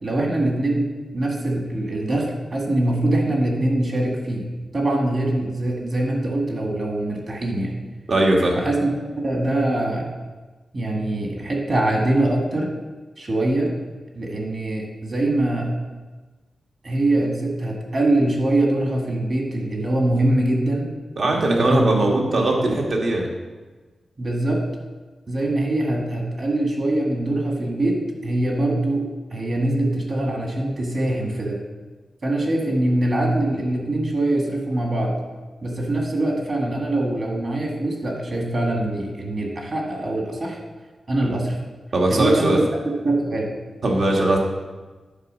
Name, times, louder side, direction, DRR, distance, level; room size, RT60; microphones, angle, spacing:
voice 1, 0.0-7.8 8.6-10.1 10.7-12.7 13.2-13.7 14.1-15.7 16.8-20.9 21.3-22.8 24.2-24.6 25.3-31.6 32.2-35.1 35.6-40.6 41.1-41.6 42.1-42.6 43.0-43.5, right 1 dB, 40° right, 0 dB, 1.8 m, -23 dB
voice 2, 8.1-8.6 21.2-23.3 41.9-42.6 43.8-44.4, right 2 dB, 55° right, 0 dB, 1.6 m, -19 dB
9.8 x 4.9 x 6.3 m, 1.3 s
wide cardioid pair, 135°, 0 cm